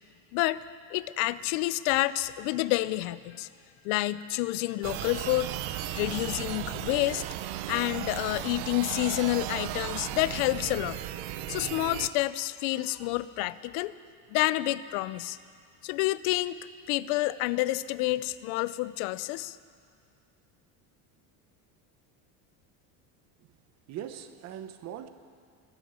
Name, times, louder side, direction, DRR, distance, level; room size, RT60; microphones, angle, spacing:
voice 1, 0.3-0.6 0.9-3.5 3.8-5.6 5.9-7.2 7.7-11.0 11.5-13.9 14.3-15.4 15.8-16.6 16.9-19.6, left 18 dB, 85° left, 17 dB, 0.6 m, -29 dB
sound 1, 4.8-12.1, right 13 dB, 75° right, 0.8 m, -35 dB
voice 2, 23.9-25.1, right 10 dB, 40° right, 10 dB, 0.8 m, -41 dB
20.0 x 8.1 x 8.9 m, 2.2 s
cardioid pair, 165°, 40 cm